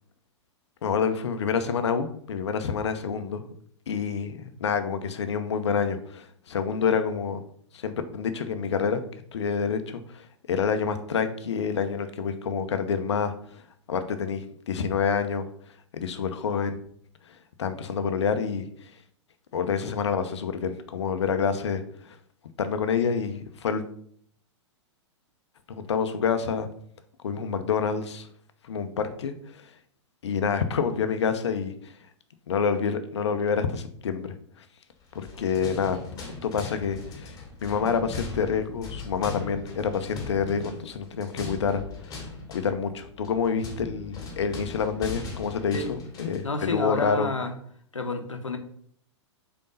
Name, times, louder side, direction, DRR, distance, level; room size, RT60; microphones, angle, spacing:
voice 1, 0.8-3.4 3.9-7.4 7.7-9.0 9.3-13.6 13.9-15.5 15.9-16.8 17.6-18.7 19.5-22.2 22.6-23.8 25.7-26.7 27.2-28.3 28.6-29.3 30.2-31.9 32.5-34.3 35.4-36.0 36.4-42.2 42.5-47.3, left 6 dB, 65° left, 0.9 m, -27 dB
sound 1, 35.1-46.5, left 4 dB, 25° left, 2.4 m, -39 dB
voice 2, 46.4-47.5 47.9-48.6, left 2 dB, 85° left, 1.1 m, -29 dB
5.3 x 4.5 x 5.5 m
figure-of-eight pair, 105°, 16 cm